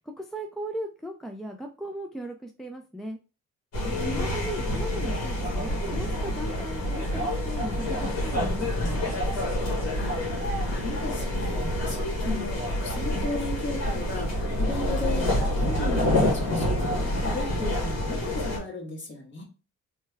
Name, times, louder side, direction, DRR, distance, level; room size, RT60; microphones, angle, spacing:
voice 1, 0.2-3.2 4.0-9.2, equal, ahead, 3 dB, 0.3 m, -37 dB
sound 1, 3.7-18.6, left 1 dB, 55° left, 1.4 m, -27 dB
voice 2, 3.8-4.3 10.0-19.4, left 3 dB, 40° left, -1 dB, 1.3 m, -35 dB
3.2 x 2.2 x 3.3 m, 0.33 s
cardioid pair, 90°, 30 cm